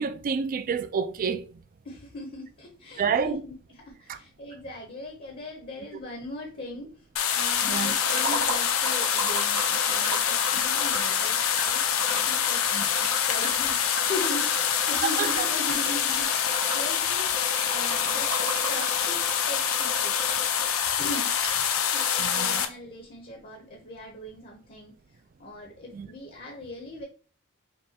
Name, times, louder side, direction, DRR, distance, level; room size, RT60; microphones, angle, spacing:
voice 1, 0.0-1.4 3.0-3.4 7.6-7.9 12.7-12.8 15.2-15.5 17.7-17.8 22.2-22.6 25.9-26.1, right 6 dB, 40° right, 0.3 m, -29 dB
voice 2, 1.8-6.9 7.3-12.6 13.3-17.4 17.7-18.3 18.7-19.2 19.5-20.5 21.0-21.3 21.9-24.9 25.4-27.0, left 1 dB, 45° left, 0.8 m, -39 dB
sound 1, 7.2-22.7, left 8 dB, 75° left, 0.5 m, -26 dB
sound 2, 8.0-20.7 21.1-21.2 21.4-21.5, right 2 dB, 85° right, 0.9 m, -37 dB
5.4 x 2.3 x 2.8 m
head